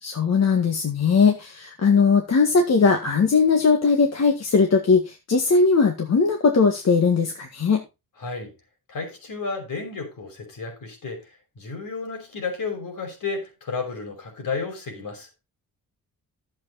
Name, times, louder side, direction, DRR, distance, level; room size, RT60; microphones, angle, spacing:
voice 1, 0.0-7.8, left 5 dB, 45° left, 1.8 m, -19 dB
voice 2, 8.2-8.5 8.9-11.2 11.6-15.3, left 4 dB, 65° left, 5.6 m, -32 dB
12.0 x 7.8 x 4.0 m
cardioid pair, 110°, 36 cm